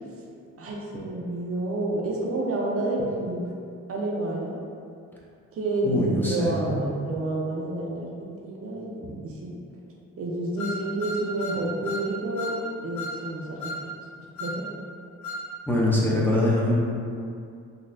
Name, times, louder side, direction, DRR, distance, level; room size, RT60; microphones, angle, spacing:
voice 1, 0.6-3.5 3.9-4.6 5.5-9.5 10.2-12.6 12.8-13.8 14.4-14.6, right 2 dB, 50° right, -3 dB, 0.6 m, -29 dB
voice 2, 5.8-6.5 15.7-16.7, left 1 dB, 5° left, -7 dB, 0.6 m, -23 dB
sound 1, 10.6-12.1 12.4-12.6 13.0-13.2 13.6-13.8 14.4-14.6 15.2-15.5, left 1 dB, 70° left, 0.5 m, -34 dB
4.0 x 2.3 x 2.6 m, 2.4 s
cardioid pair, 90°, 30 cm